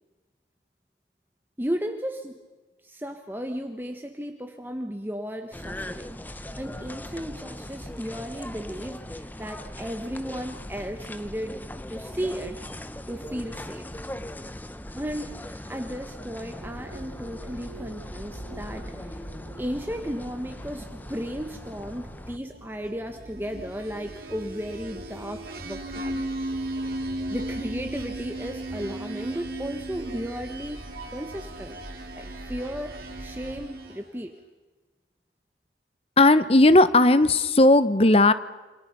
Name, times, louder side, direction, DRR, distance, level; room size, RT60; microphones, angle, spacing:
voice 1, 1.6-2.3 2.8-11.6 11.9-12.6 13.1-13.9 14.9-19.2 19.6-26.2 27.3-30.8 31.1-31.8 32.1-34.3, equal, 10° right, 5 dB, 1.3 m, -35 dB
sound 1, 5.5-22.4, left 1 dB, 10° left, 0.7 m, -40 dB
sound 2, 16.6-33.7, right 1 dB, 85° right, 3.0 m, -45 dB
sound 3, 23.3-34.2, right 1 dB, 55° right, 4.2 m, -36 dB
voice 2, 36.2-38.3, left 2 dB, 30° left, 14 dB, 1.0 m, -16 dB
28.5 x 27.0 x 5.5 m, 1.3 s
head